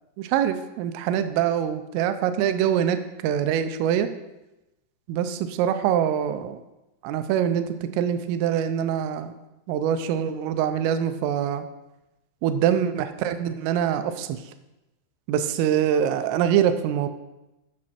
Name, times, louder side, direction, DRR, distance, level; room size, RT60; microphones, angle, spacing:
voice 1, 0.2-4.1 5.1-6.6 7.0-7.7 8.0-9.3 9.7-11.6 12.4-14.4 15.3-17.1, right 9 dB, 85° right, 10 dB, 3.2 m, -24 dB
15.0 x 6.2 x 4.3 m, 0.98 s
omnidirectional pair, 5.7 m